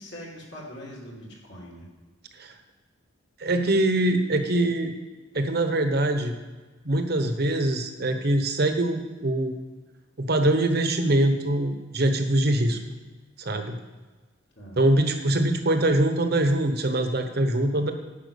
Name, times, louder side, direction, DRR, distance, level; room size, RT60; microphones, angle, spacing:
voice 1, 0.0-1.9 14.6-14.8, equal, 55° left, -3 dB, 2.7 m, -42 dB
voice 2, 3.4-5.0 5.3-6.3 6.8-9.5 10.2-12.8 13.4-13.8 14.8-17.9, right 1 dB, 50° right, 6 dB, 1.0 m, -23 dB
10.5 x 5.8 x 6.9 m, 1.3 s
head